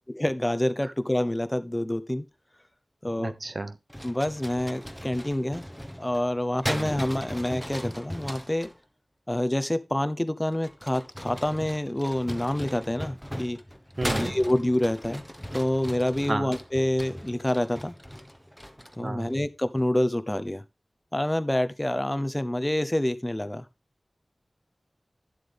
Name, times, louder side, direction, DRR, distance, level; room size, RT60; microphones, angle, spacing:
voice 1, 0.1-2.2 3.0-3.3 4.0-5.7 6.0-8.7 9.3-13.6 14.1-15.2 15.5-17.9 19.0-20.6 21.1-23.7, left 1 dB, 15° left, 0.8 m, -27 dB
voice 2, 3.2-3.7 6.7-6.9 14.0-14.3 16.3-16.5 19.0-19.3, right 2 dB, 50° right, 0.9 m, -32 dB
sound 1, 3.9-8.7 10.5-19.1, equal, ahead, 1.2 m, -37 dB
11.5 x 7.5 x 3.5 m
wide cardioid pair, 65°, 0 cm